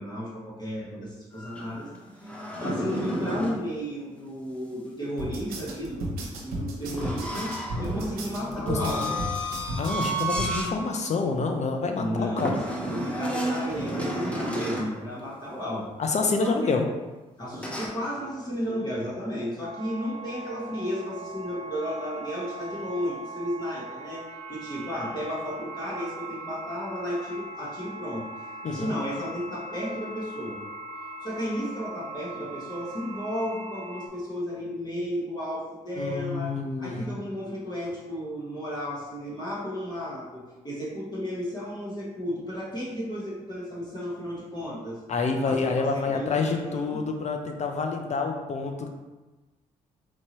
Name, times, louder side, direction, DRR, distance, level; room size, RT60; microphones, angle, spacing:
voice 1, 0.0-1.9 2.2-7.5 7.8-9.2 11.9-15.9 16.4-16.8 17.4-30.7 31.2-45.0 45.4-47.0, equal, 25° left, -7 dB, 1.4 m, -33 dB
sound 1, 1.3-3.6 6.9-10.8 11.2-11.4 12.4-15.0 17.5-17.9, equal, 10° left, 0.9 m, -31 dB
sound 2, 5.2-10.5, right 1 dB, 75° right, 0.8 m, -34 dB
voice 2, 8.7-9.1 9.8-12.5 16.0-16.9 28.6-28.9 36.0-37.2 45.1-48.9, left 4 dB, 45° left, 4 dB, 0.7 m, -28 dB
sound 3, 19.6-34.1, right 2 dB, 45° right, 0.6 m, -40 dB
4.4 x 2.9 x 3.0 m, 1.2 s
supercardioid pair, 50°, 16 cm